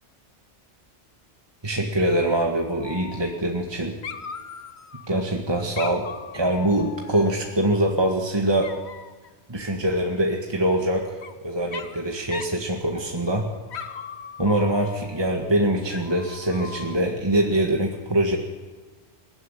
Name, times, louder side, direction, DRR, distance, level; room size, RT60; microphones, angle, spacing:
voice 1, 1.6-4.0 5.1-6.1 6.3-8.7 9.5-13.5 14.4-18.4, right 1 dB, 20° right, 1 dB, 1.8 m, -23 dB
Dog, 2.8-3.7 4.0-5.2 5.8-7.8 8.6-9.3 10.7-11.3 11.7-12.0 12.3-12.6 12.9-13.4 13.7-15.2 15.9-17.1, left 6 dB, 70° left, 1.4 m, -39 dB
22.0 x 16.0 x 9.9 m, 1.4 s
omnidirectional pair, 1.2 m